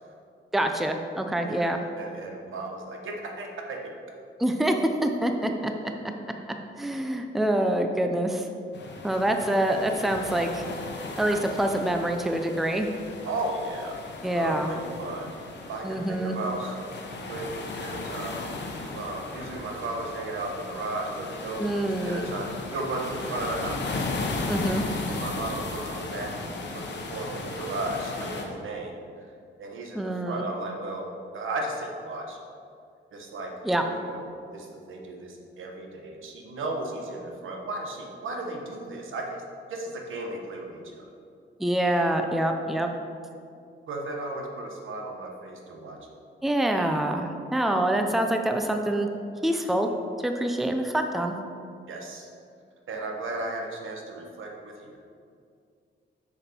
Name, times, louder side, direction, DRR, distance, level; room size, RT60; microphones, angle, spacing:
voice 1, 0.5-1.8 4.4-5.7 6.8-8.5 9.0-10.6 11.2-12.9 14.2-14.7 15.8-16.4 21.6-22.2 24.5-24.8 29.9-30.4 33.6-33.8 41.6-42.9 46.4-49.1 49.4-49.9 50.2-51.4, right 1 dB, ahead, 4 dB, 0.5 m, -26 dB
voice 2, 2.0-4.0 13.2-14.0 14.3-18.4 18.9-24.0 25.1-26.3 26.7-28.9 29.6-31.1 31.3-32.4 33.1-39.4 39.7-41.1 43.9-46.0 51.9-52.3 52.9-55.0, right 2 dB, 80° right, 1 dB, 1.1 m, -35 dB
sound 1, 8.7-28.4, left 3 dB, 60° left, 1.0 m, -36 dB
6.5 x 6.1 x 4.3 m, 2.4 s
cardioid pair, 105°, 20 cm